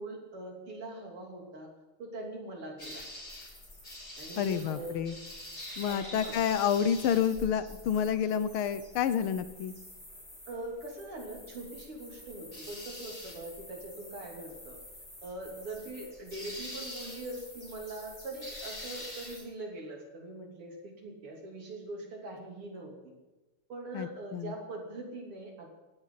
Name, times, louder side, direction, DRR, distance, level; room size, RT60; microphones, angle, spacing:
voice 1, 0.0-1.7 2.0-3.0 4.2-5.0 5.9-6.4 10.5-14.8 15.2-23.1 23.7-25.7, right 2 dB, 85° right, 0 dB, 4.3 m, -42 dB
sound 1, 2.8-19.4, left 1 dB, 30° left, 7.7 m, -46 dB
voice 2, 4.4-5.2 5.8-9.7 23.9-24.5, left 8 dB, 75° left, 13 dB, 1.7 m, -29 dB
19.5 x 16.0 x 4.1 m, 1.2 s
omnidirectional pair, 2.4 m